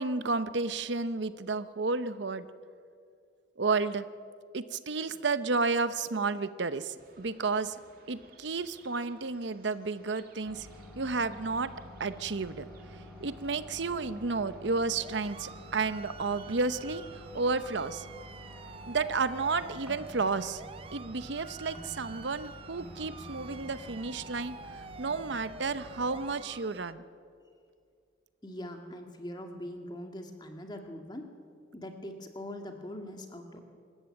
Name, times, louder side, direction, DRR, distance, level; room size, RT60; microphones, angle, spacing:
voice 1, 0.0-2.5 3.6-4.1 4.5-7.8 8.1-10.7 11.0-11.7 12.0-12.7 13.2-18.1 18.9-20.6 20.9-27.0, right 4 dB, 70° right, 13 dB, 0.8 m, -32 dB
sound 1, 7.0-25.1, right 3 dB, 50° right, 2.3 m, -59 dB
sound 2, 10.4-26.3, equal, 5° right, 5.2 m, -49 dB
sound 3, 15.0-26.9, right 4 dB, 30° right, 0.5 m, -49 dB
voice 2, 28.4-31.3 31.7-33.6, left 1 dB, 25° left, 4 dB, 1.9 m, -42 dB
25.5 x 14.0 x 8.8 m, 2.2 s
head